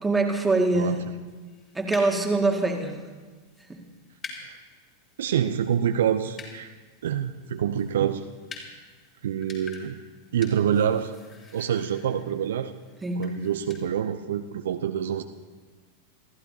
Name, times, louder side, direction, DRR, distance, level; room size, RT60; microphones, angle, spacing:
voice 1, 0.0-1.0 1.7-3.0 3.7-3.8 13.0-13.4, right 2 dB, 10° right, 2 dB, 2.0 m, -24 dB
sound 1, 1.3-13.8, left 4 dB, 25° left, 3.8 m, -47 dB
voice 2, 5.2-6.7 7.0-8.3 9.2-10.0 10.3-11.1 11.5-12.7 13.2-15.2, right 9 dB, 60° right, 9 dB, 0.6 m, -26 dB
27.0 x 14.5 x 2.8 m, 1.4 s
figure-of-eight pair, 90°, 0 cm